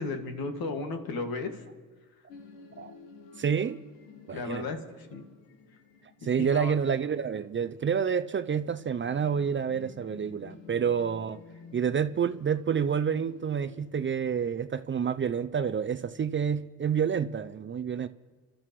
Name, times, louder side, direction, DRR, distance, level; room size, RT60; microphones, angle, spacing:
voice 1, 0.0-1.6 4.3-5.2 6.4-6.7, left 3 dB, 65° left, 2.1 m, -34 dB
sound 1, 2.3-13.9, left 5 dB, 85° left, 1.5 m, -52 dB
voice 2, 3.4-3.8 4.3-4.7 6.2-11.4 11.7-18.1, right 7 dB, 30° right, 0.5 m, -28 dB
30.0 x 12.5 x 3.2 m
supercardioid pair, 60°, 38 cm